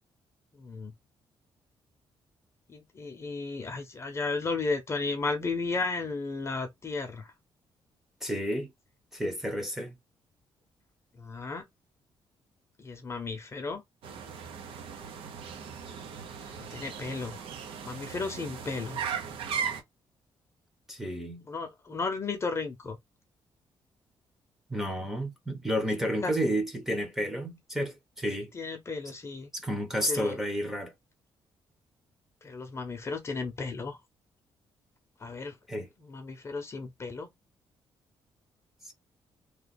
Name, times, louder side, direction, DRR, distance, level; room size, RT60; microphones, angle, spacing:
voice 1, 0.6-0.9 2.7-7.3 11.2-11.6 12.8-13.8 16.4-17.4 17.8-19.0 21.5-23.0 26.2-26.3 28.5-29.5 30.1-30.4 32.4-34.0 35.2-35.6 36.0-37.3, left 4 dB, 30° left, 0.8 m, -34 dB
voice 2, 8.2-8.7 9.1-9.9 20.9-21.4 24.7-28.5 29.5-30.9 35.7-35.9 38.8-38.9, equal, 5° right, 0.9 m, -31 dB
sound 1, 14.0-19.8, right 7 dB, 75° right, 0.9 m, -37 dB
3.1 x 2.3 x 4.0 m
cardioid pair, 145°, 9 cm